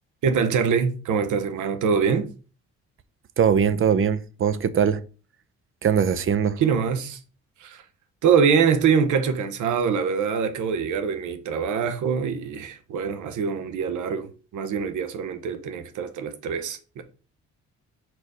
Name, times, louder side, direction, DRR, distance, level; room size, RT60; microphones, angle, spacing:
voice 1, 0.2-2.3 6.6-7.2 7.6-7.8 8.2-17.0, right 6 dB, 80° right, 1.0 m, -24 dB
voice 2, 3.4-5.0 5.8-6.6, right 7 dB, 45° right, 0.6 m, -21 dB
4.5 x 4.2 x 4.8 m
cardioid pair, 90°, 30 cm